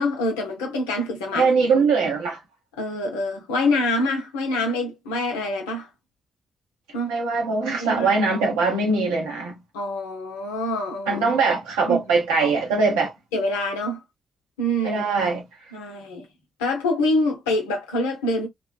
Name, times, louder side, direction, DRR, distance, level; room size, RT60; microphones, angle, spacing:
voice 1, 0.0-1.7 2.8-5.9 6.9-7.2 7.7-8.1 9.7-11.2 11.9-12.0 13.3-14.0 14.6-15.0 15.7-16.3 16.6-18.5, left 1 dB, 90° left, 0.7 m, -25 dB
voice 2, 1.3-2.4 7.1-9.5 11.1-13.1 14.8-15.4, right 4 dB, 85° right, 1.0 m, -21 dB
2.9 x 2.2 x 2.2 m
hypercardioid pair, 40°, 0 cm